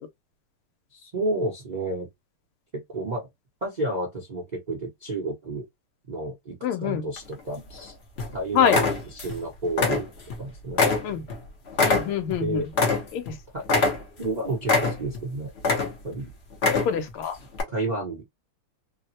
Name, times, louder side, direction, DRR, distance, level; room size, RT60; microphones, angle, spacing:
voice 1, 0.9-2.1 2.7-3.3 3.6-5.7 6.1-7.9 8.3-10.1 10.4-11.3 12.4-12.7 13.5-13.7 14.2-15.5 15.8-16.3 17.7-18.2, right 2 dB, 85° right, 0.4 m, -31 dB
voice 2, 6.6-7.0 8.5-8.8 11.0-11.2 11.8-12.6 13.1-13.3 16.8-17.4, left 8 dB, 85° left, 1.5 m, -25 dB
sound 1, 7.2-7.8 8.2-8.3 8.7-9.4 9.7-10.4 10.8-13.3 13.6-14.3 14.6-15.2 15.6-16.2 16.5-17.1 17.5-17.6, left 3 dB, 65° left, 0.6 m, -24 dB
3.5 x 2.1 x 2.6 m
omnidirectional pair, 2.4 m